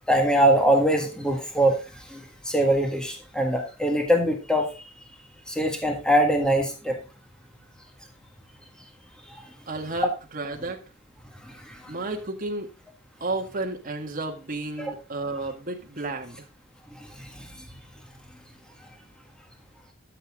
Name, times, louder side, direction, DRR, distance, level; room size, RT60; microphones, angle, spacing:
voice 1, 0.1-1.8 2.1-4.7 5.5-7.0 11.5-11.9 14.8-14.9 17.2-17.5, right 1 dB, 5° left, 2 dB, 1.7 m, -23 dB
voice 2, 9.7-10.8 11.9-12.7 13.2-16.4, right 2 dB, 40° right, 3 dB, 1.9 m, -32 dB
13.0 x 6.9 x 3.6 m, 0.31 s
head